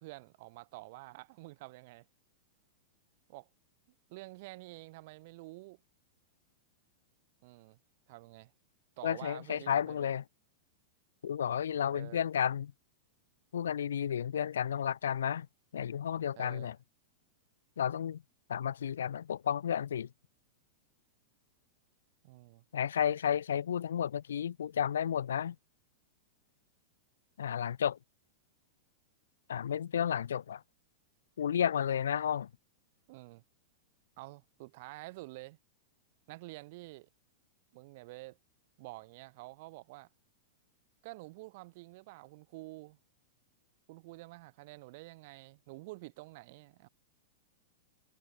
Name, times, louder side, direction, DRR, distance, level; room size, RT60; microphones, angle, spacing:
voice 1, 0.0-2.0 3.3-3.5 4.1-5.8 7.4-7.8 8.1-8.5 9.0-10.1 11.9-12.2 16.4-16.7 22.2-22.6 33.1-33.4 34.2-35.6 36.3-37.1 37.7-38.4 38.8-40.1 41.0-43.0 43.9-46.9, right 22 dB, 55° right, 1.5 m, -49 dB
voice 2, 9.0-10.2 11.2-12.7 13.5-15.5 15.7-16.8 17.8-18.2 18.5-20.1 22.7-25.6 27.4-28.0 29.5-30.6 31.4-32.5, left 9 dB, 80° left, 0.5 m, -32 dB
hypercardioid pair, 110°, 0 cm